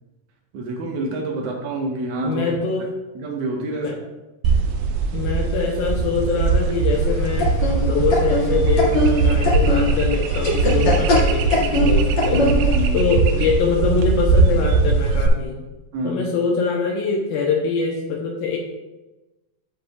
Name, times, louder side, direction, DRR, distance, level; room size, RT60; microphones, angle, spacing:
voice 1, 0.5-2.4 2.8-2.9 3.1-4.0 12.3-13.0 15.4-15.6 15.9-16.2, right 2 dB, 60° right, 0 dB, 2.4 m, -27 dB
voice 2, 2.2-2.9 3.8-3.9 5.1-12.4 12.9-15.6 16.0-18.6, left 5 dB, 80° left, -1 dB, 2.6 m, -23 dB
sound 1, 4.4-15.3, right 4 dB, 85° right, 1.7 m, -20 dB
sound 2, 6.9-12.8, left 2 dB, 50° left, 3.2 m, -22 dB
12.0 x 7.6 x 2.4 m, 1.1 s
omnidirectional pair, 4.4 m